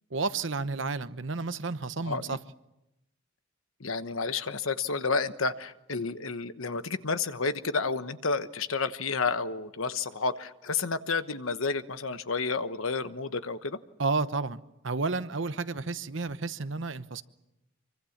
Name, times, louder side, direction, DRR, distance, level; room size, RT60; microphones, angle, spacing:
voice 1, 0.1-2.4 14.0-17.2, right 3 dB, 65° right, 1.0 m, -31 dB
voice 2, 2.0-2.4 3.8-13.8, left 4 dB, 80° left, 1.2 m, -30 dB
26.0 x 24.0 x 7.3 m
head